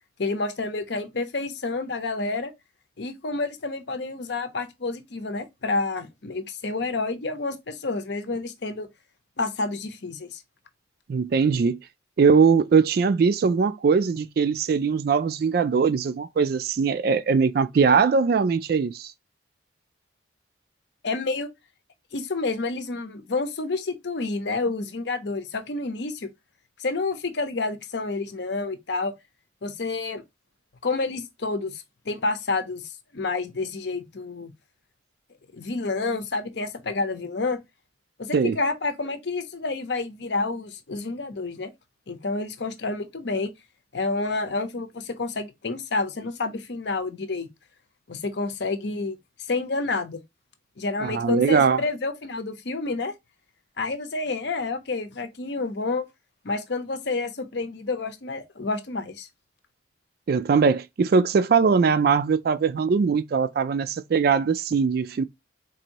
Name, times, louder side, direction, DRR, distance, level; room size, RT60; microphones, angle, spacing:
voice 1, 0.2-2.5 3.0-8.9 9.4-10.4 21.0-21.5 22.1-26.3 26.8-29.1 29.6-30.2 30.8-34.5 35.5-37.6 38.2-41.7 42.1-43.5 43.9-47.5 48.1-49.2 49.5-50.2 50.8-53.1 53.8-56.0 56.4-59.3, left 3 dB, 60° left, 0.7 m, -29 dB
voice 2, 11.1-11.8 12.2-19.1 38.3-38.6 51.0-51.8 60.3-65.2, right 5 dB, 50° right, 0.3 m, -21 dB
4.0 x 2.6 x 2.8 m
head